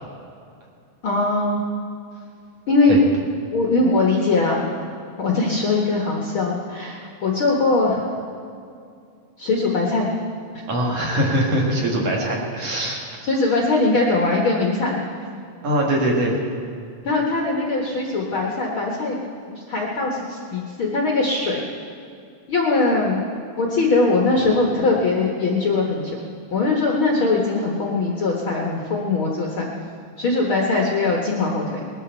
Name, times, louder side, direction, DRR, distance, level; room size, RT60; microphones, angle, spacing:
voice 1, 1.0-1.6 2.7-3.0 3.5-4.7 5.2-8.0 9.4-10.1 13.3-15.0 17.0-19.2 19.5-21.6 22.5-23.2 23.6-26.2 26.5-29.7 30.2-31.9, left 3 dB, 60° left, -1 dB, 1.3 m, -21 dB
voice 2, 10.7-13.2 15.6-16.4, right 1 dB, 45° right, -2 dB, 2.7 m, -22 dB
21.0 x 13.0 x 4.5 m, 2.4 s
omnidirectional pair, 4.6 m